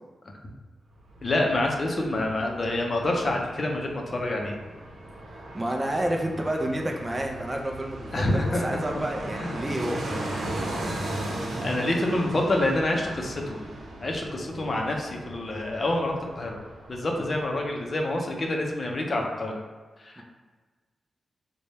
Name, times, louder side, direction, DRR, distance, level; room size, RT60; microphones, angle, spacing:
Fixed-wing aircraft airplane, 0.9-17.9 18.2-18.3, right 1 dB, 85° right, 0.7 m, -37 dB
voice 1, 1.2-4.6 8.1-8.8 9.4-9.5 10.9-13.6 14.0-16.6 16.9-19.5 20.0-20.2, left 1 dB, 35° left, 1 dB, 0.6 m, -27 dB
voice 2, 5.5-10.2 20.2-20.3, right 1 dB, 20° right, 1 dB, 0.4 m, -30 dB
3.3 x 2.2 x 4.0 m, 1.4 s
wide cardioid pair, 135°, 0 cm